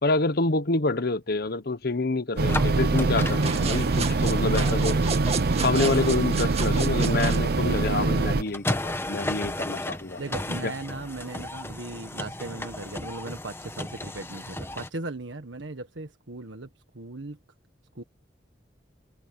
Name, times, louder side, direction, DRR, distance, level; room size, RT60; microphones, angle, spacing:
voice 1, 0.0-5.0 5.6-10.2 10.6-10.7, left 3 dB, 55° left, 1.0 m, -27 dB
sound 1, 2.4-14.9, left 1 dB, 15° left, 1.2 m, -35 dB
sound 2, 2.4-8.4, right 3 dB, 55° right, 0.6 m, -24 dB
sound 3, 3.3-7.5, right 5 dB, 35° right, 2.3 m, -33 dB
voice 2, 10.2-16.7 16.9-17.4 17.9-18.0, right 2 dB, 85° right, 1.5 m, -37 dB
head